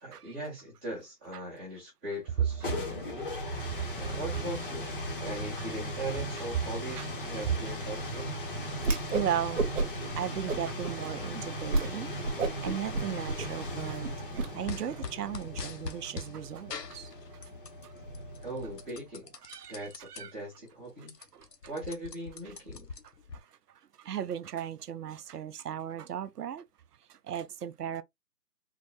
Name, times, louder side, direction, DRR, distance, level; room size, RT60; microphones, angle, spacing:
voice 1, 0.0-3.6 3.9-8.4 18.4-19.3 19.7-21.1 21.7-22.8, right 1 dB, 5° right, 0.7 m, -40 dB
sound 1, 2.3-19.1, left 1 dB, 35° left, 0.8 m, -38 dB
voice 2, 3.6-4.2 5.1-5.2 5.6-5.7 6.9-7.1 8.8-17.5 17.8-17.9 19.4-20.3 21.3-21.5 22.5-22.6 23.3-26.6 27.1-28.0, right 9 dB, 70° right, 0.6 m, -37 dB
Whoosh swoosh swish, 8.8-9.3 9.6-10.1 10.5-11.0 11.3-11.4 11.7-11.9 12.2-14.5, right 3 dB, 50° right, 0.9 m, -30 dB
sound 2, 14.7-16.3 16.7-17.8 18.1-20.2 20.6-20.7 21.0-23.4, left 5 dB, 75° left, 0.9 m, -42 dB
3.7 x 2.2 x 3.0 m
figure-of-eight pair, 150°, 49 cm